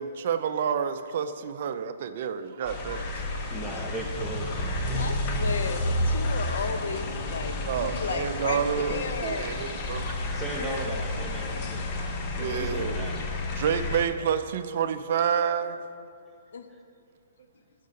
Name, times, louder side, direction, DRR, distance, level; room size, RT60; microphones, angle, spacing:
voice 1, 0.0-3.2 4.8-5.0 7.7-10.4 12.4-13.2 13.5-15.8, right 7 dB, 55° right, 10 dB, 0.4 m, -29 dB
sound 1, 2.6-14.1, left 1 dB, 30° left, 0.9 m, -31 dB
voice 2, 3.5-5.1 8.8-9.1 10.3-12.0 12.3-13.4 13.9-14.3 16.7-16.8, right 2 dB, ahead, -2 dB, 0.9 m, -38 dB
voice 3, 4.9-8.6 8.9-9.6 16.5-16.7, left 5 dB, 75° left, 8 dB, 0.7 m, -34 dB
6.6 x 6.5 x 6.5 m, 2.4 s
hypercardioid pair, 150°, 0 cm